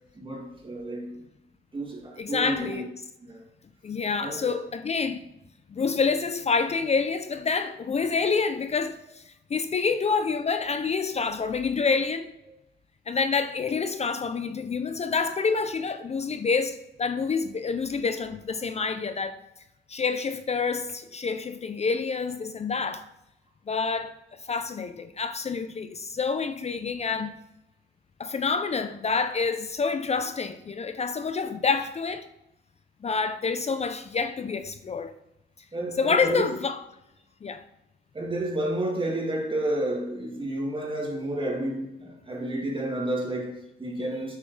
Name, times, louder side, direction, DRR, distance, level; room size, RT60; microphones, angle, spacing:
voice 1, 0.1-1.2 1.7-2.8 3.2-3.4 4.2-4.6 35.7-36.5 38.1-44.4, right 1 dB, 25° right, 2.7 m, -31 dB
voice 2, 2.2-2.9 3.8-5.2 5.7-12.3 13.1-19.4 19.9-23.0 23.7-24.2 24.4-27.4 28.2-32.3 33.0-35.1 36.0-36.8 37.4-37.6, left 5 dB, 35° left, 0.5 m, -27 dB
9.6 x 7.3 x 3.3 m
cardioid pair, 90°, 20 cm